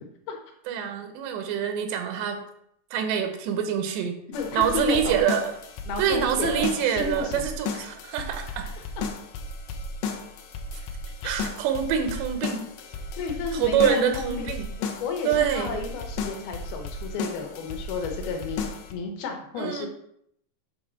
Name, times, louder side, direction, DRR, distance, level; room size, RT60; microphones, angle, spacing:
voice 1, 0.7-2.4 2.9-4.2 4.5-5.5 6.0-8.7 11.2-12.7 13.5-14.7 15.3-15.7 19.6-19.9, right 8 dB, 90° right, 6 dB, 3.1 m, -25 dB
sound 1, 4.3-18.9, left 3 dB, 85° left, 3.0 m, -35 dB
voice 2, 4.3-5.2 5.9-7.5 8.8-9.1 11.2-11.4 13.1-14.5 14.8-19.9, left 5 dB, 70° left, 3 dB, 2.9 m, -32 dB
8.7 x 3.5 x 6.1 m, 0.72 s
omnidirectional pair, 4.8 m